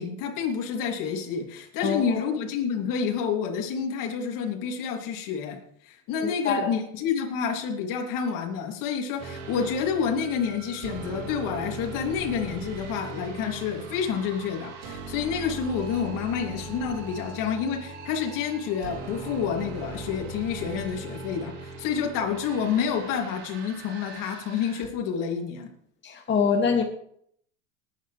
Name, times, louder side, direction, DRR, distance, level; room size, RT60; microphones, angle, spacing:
voice 1, 0.0-5.6 5.9-25.7, left 7 dB, 55° left, 2 dB, 3.1 m, -29 dB
voice 2, 1.8-2.2 6.2-6.7 26.0-26.8, left 5 dB, 25° left, 1 dB, 2.4 m, -25 dB
sound 1, 9.2-24.9, right 3 dB, 60° right, 3.2 m, -39 dB
19.5 x 9.4 x 3.4 m, 0.67 s
hypercardioid pair, 90°, 40 cm